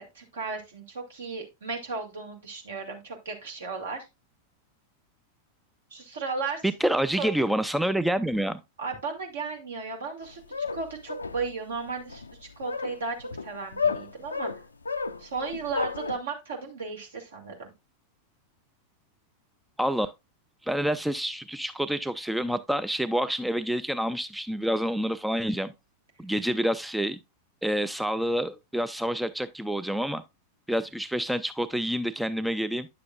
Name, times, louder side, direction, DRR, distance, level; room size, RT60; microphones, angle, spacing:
voice 1, 0.0-4.1 5.9-6.6 7.2-7.3 8.8-10.4 10.7-14.5 15.2-17.7, right 4 dB, 65° right, 2.1 m, -35 dB
voice 2, 6.6-8.6 19.8-20.1 20.6-25.7 26.2-27.2 27.6-30.2 30.7-32.9, equal, ahead, 0.3 m, -28 dB
sound 1, 10.2-16.2, left 5 dB, 75° left, 0.4 m, -32 dB
9.8 x 6.7 x 2.4 m
figure-of-eight pair, 90°, 0 cm